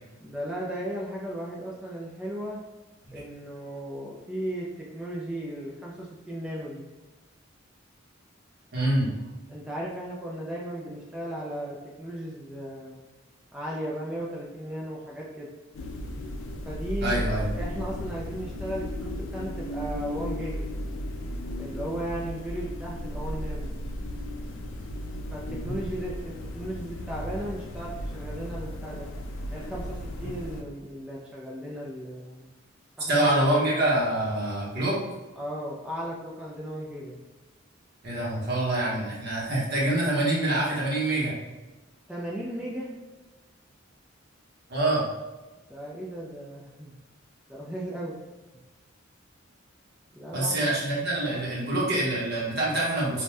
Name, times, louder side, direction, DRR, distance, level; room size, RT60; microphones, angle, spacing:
voice 1, 0.2-2.6 3.1-6.8 9.5-13.0 13.5-15.5 16.7-17.2 17.5-20.7 21.6-23.7 25.3-29.1 29.5-32.5 33.0-33.7 35.4-37.2 42.1-42.9 45.7-46.9 47.5-48.2 50.1-50.8, equal, 5° right, -5 dB, 0.3 m, -36 dB
voice 2, 8.7-9.1 17.0-17.5 33.1-34.9 38.0-41.3 44.7-45.0 50.3-53.2, right 1 dB, 55° right, -6 dB, 1.1 m, -25 dB
sound 1, 15.7-30.6, equal, 70° left, 0.4 m, -35 dB
2.6 x 2.2 x 3.2 m, 1.1 s
head